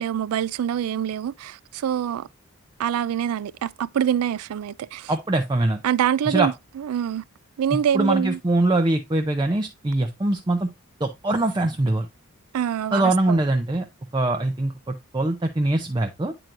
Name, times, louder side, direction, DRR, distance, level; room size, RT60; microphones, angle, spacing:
voice 1, 0.0-2.3 2.8-5.1 5.8-7.2 7.6-8.4 12.5-13.4, right 9 dB, 90° right, 0.3 m, -25 dB
voice 2, 5.1-5.8 6.3-6.5 7.9-10.7 11.0-12.1 12.9-13.8 14.1-16.3, right 2 dB, 20° right, 0.5 m, -23 dB
8.9 x 4.5 x 2.5 m
head